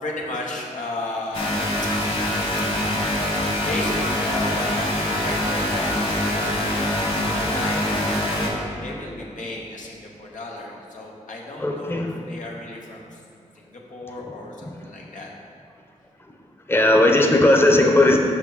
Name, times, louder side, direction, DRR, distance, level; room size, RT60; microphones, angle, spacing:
voice 1, 0.0-1.7 3.6-6.6 6.9-13.2 13.5-15.3, left 2 dB, 90° left, -2 dB, 0.9 m, -34 dB
sound 1, 1.3-8.5, left 1 dB, 50° left, 1.6 m, -24 dB
voice 2, 11.6-12.2 16.7-18.2, left 1 dB, 15° left, 2 dB, 0.7 m, -17 dB
6.0 x 5.7 x 4.0 m, 2.6 s
cardioid pair, 65°, 13 cm